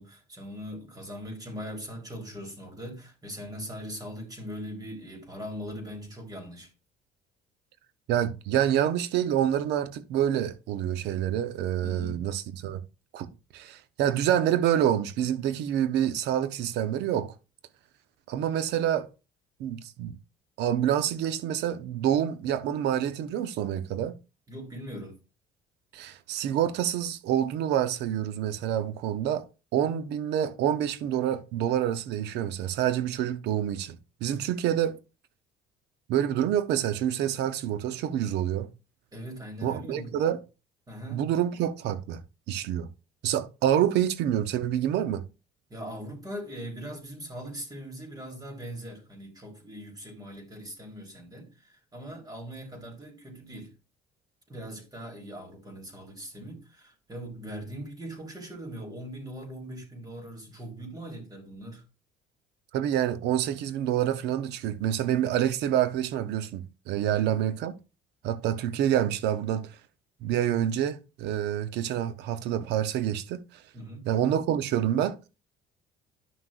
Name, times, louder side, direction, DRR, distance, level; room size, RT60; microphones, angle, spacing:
voice 1, 0.0-6.7 11.8-12.2 24.5-25.2 34.3-34.4 39.1-40.2 40.9-41.3 45.7-53.7 54.5-61.8 67.0-67.3 73.7-74.1, equal, 20° right, 3.7 m, -40 dB
voice 2, 8.1-12.8 13.1-13.3 13.5-17.3 18.3-19.1 19.6-20.2 20.6-24.1 25.9-29.5 29.7-35.0 36.1-38.7 39.6-40.4 41.1-42.2 42.5-42.9 43.2-45.2 62.7-67.7 68.2-69.7 70.2-73.4 74.1-75.3, right 10 dB, 75° right, 0.8 m, -27 dB
11.0 x 6.1 x 2.5 m
supercardioid pair, 90°, 18 cm